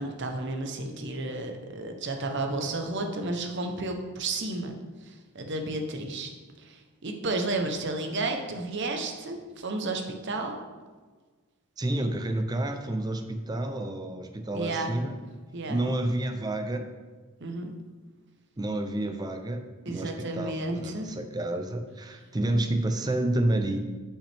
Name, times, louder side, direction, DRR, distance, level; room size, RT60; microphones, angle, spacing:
voice 1, 0.0-4.7 5.0-6.3 6.6-10.6 14.5-14.9 15.5-15.8 17.4-17.7 19.9-21.2, right 2 dB, 50° right, 4 dB, 0.8 m, -32 dB
voice 2, 11.8-15.2 15.6-16.9 18.6-23.8, right 1 dB, 20° right, 7 dB, 0.5 m, -29 dB
8.8 x 5.6 x 3.4 m, 1.4 s
head